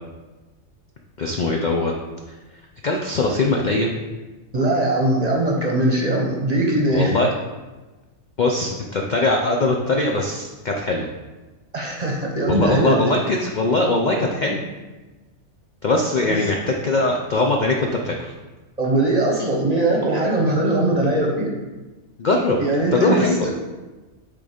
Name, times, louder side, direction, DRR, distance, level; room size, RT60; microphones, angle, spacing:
voice 1, 1.2-1.9 2.3-2.4 2.8-3.9 6.9-7.3 8.4-11.1 12.5-14.6 15.8-18.3 22.2-22.6 22.9-23.5, left 2 dB, 60° left, 1 dB, 0.4 m, -21 dB
voice 2, 4.5-7.2 11.7-13.2 16.2-16.3 18.8-21.6 22.6-23.5, right 2 dB, 30° right, -1 dB, 0.9 m, -21 dB
6.7 x 4.0 x 5.0 m, 1.2 s
omnidirectional pair, 1.5 m